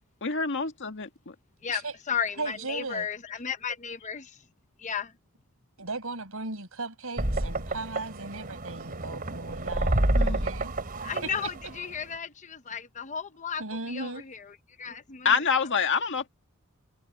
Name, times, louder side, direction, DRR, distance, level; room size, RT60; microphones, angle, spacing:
voice 1, 0.2-1.3 10.1-10.4 15.2-16.3, left 6 dB, 60° left, 1.9 m, -27 dB
voice 2, 1.6-4.4 4.8-5.1 11.0-15.4, left 7 dB, 35° left, 0.9 m, -34 dB
voice 3, 2.4-3.1 5.8-10.7 11.2-11.3 13.6-14.2, right 3 dB, 70° right, 7.5 m, -37 dB
sound 1, 7.2-12.2, right 1 dB, 45° right, 3.2 m, -29 dB
head